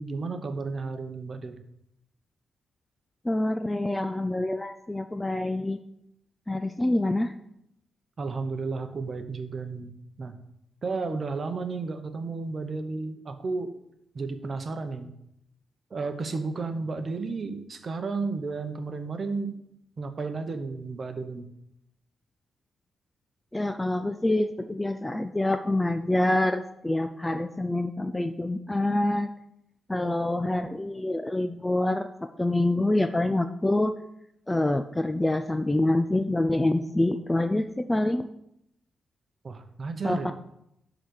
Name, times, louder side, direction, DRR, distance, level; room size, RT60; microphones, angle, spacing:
voice 1, 0.0-1.6 8.2-10.3 10.8-13.7 14.1-15.1 15.9-19.6 20.0-21.5 39.4-40.3, right 4 dB, 35° right, 7 dB, 0.9 m, -33 dB
voice 2, 3.3-5.8 6.5-7.3 23.5-29.3 29.9-33.9 34.5-38.3 40.0-40.3, left 1 dB, 10° left, 9 dB, 0.3 m, -26 dB
11.5 x 4.0 x 6.4 m, 0.80 s
wide cardioid pair, 155°, 0 cm